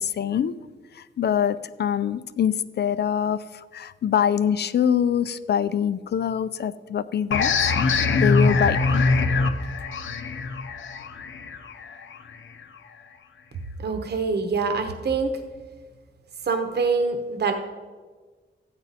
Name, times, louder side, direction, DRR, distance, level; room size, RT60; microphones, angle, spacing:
voice 1, 0.0-0.5 0.9-9.0, left 8 dB, 60° left, 14 dB, 0.4 m, -24 dB
sound 1, 7.3-12.6, left 4 dB, 80° left, 0.8 m, -23 dB
voice 2, 13.8-15.3 16.4-17.5, right 4 dB, 60° right, 6 dB, 1.0 m, -25 dB
13.5 x 9.7 x 4.1 m, 1.4 s
wide cardioid pair, 165°, 20 cm